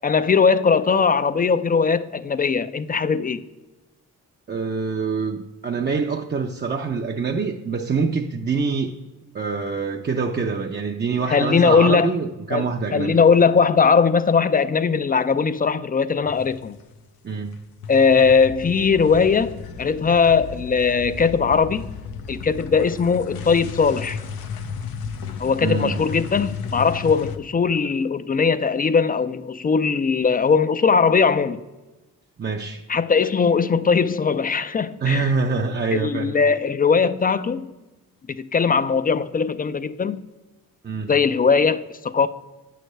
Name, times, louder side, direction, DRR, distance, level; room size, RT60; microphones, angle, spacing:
voice 1, 0.0-3.4 11.3-12.1 12.5-12.6 12.9-16.8 17.9-22.0 22.3-24.2 25.4-31.6 32.9-35.3 35.9-37.7 38.3-40.2 41.1-42.3, left 5 dB, 25° left, 0.3 m, -19 dB
voice 2, 4.5-8.9 9.3-13.2 17.2-17.5 25.6-26.0 32.4-32.8 35.0-36.4 40.8-41.1, right 5 dB, 30° right, 0.5 m, -25 dB
sound 1, 16.3-17.0 17.3-27.4, left 5 dB, 85° left, 0.6 m, -34 dB
8.9 x 3.3 x 6.5 m
cardioid pair, 70°, 35 cm